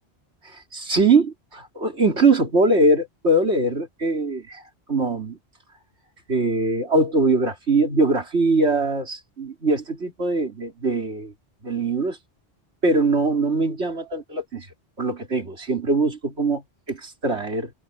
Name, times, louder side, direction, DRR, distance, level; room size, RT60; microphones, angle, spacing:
voice 1, 0.4-4.6 4.9-5.4 6.3-11.3 11.6-12.2 12.8-14.7 15.0-17.7, right 2 dB, 85° right, 3.7 m, -22 dB
omnidirectional pair, 1.1 m